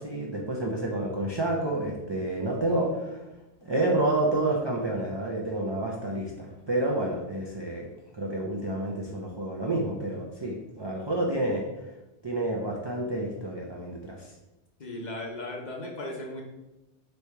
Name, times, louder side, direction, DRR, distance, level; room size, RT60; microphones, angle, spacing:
voice 1, 0.0-3.2 3.6-7.9 8.1-11.7 12.2-14.3, right 1 dB, 40° right, -2 dB, 0.3 m, -29 dB
voice 2, 14.8-16.4, left 1 dB, 45° left, -1 dB, 0.7 m, -36 dB
3.2 x 2.8 x 4.5 m, 1.0 s
omnidirectional pair, 1.2 m